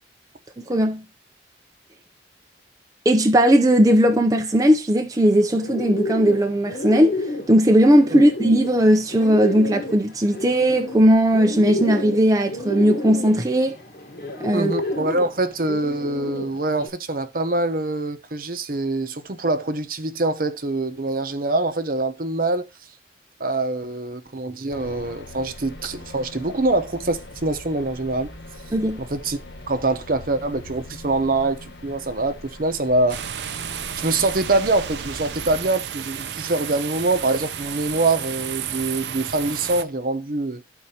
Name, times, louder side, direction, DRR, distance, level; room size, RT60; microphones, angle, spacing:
voice 1, 0.7-1.0 3.1-7.2 7.5-13.8 14.4-14.7 28.7-29.0, equal, 20° right, 0.5 m, -17 dB
Bird, 5.2-16.9, left 2 dB, 60° left, 1.3 m, -31 dB
voice 2, 14.5-22.7 23.4-28.3 29.0-29.4 29.7-33.2 34.0-40.6, right 2 dB, 55° right, 0.8 m, -24 dB
sound 1, 24.7-35.6, left 1 dB, 75° left, 1.6 m, -41 dB
sound 2, 33.1-39.8, right 9 dB, 80° right, 0.6 m, -32 dB
13.0 x 4.5 x 2.8 m
head